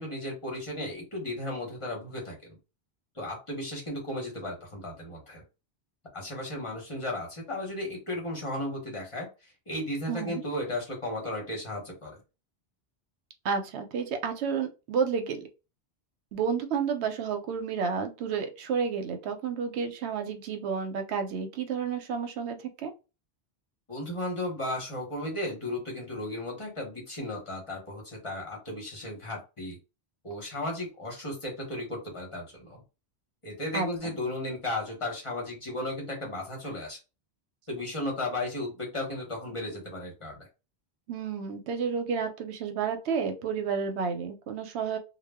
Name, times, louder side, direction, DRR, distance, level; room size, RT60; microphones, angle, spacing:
voice 1, 0.0-2.6 3.1-5.4 6.1-12.2 23.9-29.8 30.2-32.8 33.4-37.0 37.7-40.5, left 1 dB, 30° left, -2 dB, 0.9 m, -35 dB
voice 2, 10.1-10.4 13.4-15.4 16.3-22.9 33.7-34.1 41.1-45.0, right 6 dB, 85° right, 6 dB, 0.8 m, -31 dB
2.1 x 2.1 x 3.4 m, 0.29 s
omnidirectional pair, 1.1 m